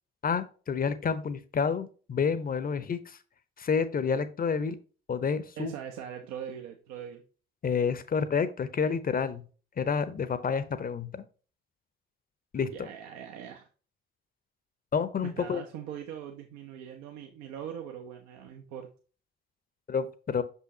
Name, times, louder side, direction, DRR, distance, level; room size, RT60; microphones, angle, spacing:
voice 1, 0.2-3.2 3.6-4.8 5.1-5.7 7.6-9.4 9.8-11.2 12.5-12.9 14.9-15.6 19.9-20.4, left 6 dB, 30° left, 14 dB, 0.7 m, -29 dB
voice 2, 5.6-7.2 12.7-13.7 15.2-18.9, right 9 dB, 60° right, 3 dB, 0.8 m, -41 dB
6.1 x 5.5 x 2.8 m, 0.37 s
figure-of-eight pair, 45°, 31 cm